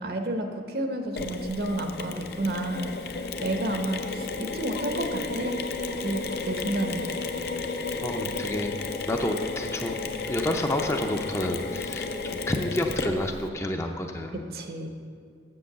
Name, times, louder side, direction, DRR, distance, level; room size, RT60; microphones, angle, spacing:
voice 1, 0.0-3.0 3.4-5.6 6.0-7.0 14.5-14.9, right 1 dB, 60° right, 5 dB, 0.9 m, -30 dB
Mechanisms, 1.2-13.5, left 3 dB, 60° left, 0.6 m, -33 dB
voice 2, 8.0-8.7 9.1-10.0 10.3-14.3, left 1 dB, 15° left, 4 dB, 0.5 m, -29 dB
7.7 x 6.9 x 6.8 m, 2.3 s
head